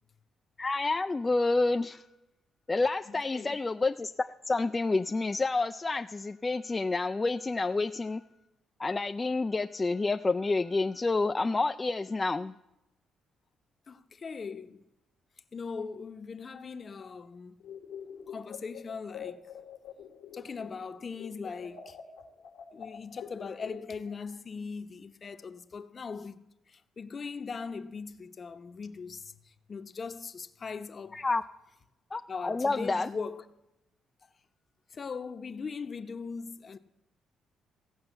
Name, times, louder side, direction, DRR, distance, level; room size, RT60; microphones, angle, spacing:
voice 1, 0.6-2.0 2.7-8.2 8.8-12.6 31.1-31.4 32.1-33.1, left 3 dB, 25° left, 0.3 m, -29 dB
voice 2, 3.1-3.6 13.9-14.8 15.5-17.6 18.3-19.4 20.3-22.0 22.7-26.4 26.7-31.2 32.3-33.4 34.9-36.8, left 5 dB, 40° left, 0.8 m, -40 dB
sound 1, 17.6-20.9 21.1-24.2, left 8 dB, 85° left, 1.3 m, -45 dB
16.0 x 5.5 x 7.9 m
cardioid pair, 90°, 0 cm